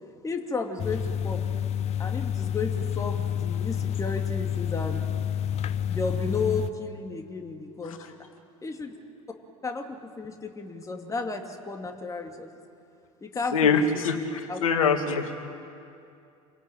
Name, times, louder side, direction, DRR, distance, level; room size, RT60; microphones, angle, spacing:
voice 1, 0.2-1.4 2.0-5.0 5.9-8.1 8.6-8.9 9.6-12.5 13.2-14.6, left 4 dB, 15° left, 3 dB, 2.5 m, -33 dB
sound 1, 0.8-6.7, left 9 dB, 35° left, 0.9 m, -29 dB
voice 2, 13.5-14.2 14.6-15.4, left 5 dB, 70° left, 6 dB, 2.1 m, -23 dB
27.0 x 17.0 x 9.1 m, 2.5 s
figure-of-eight pair, 70°, 18 cm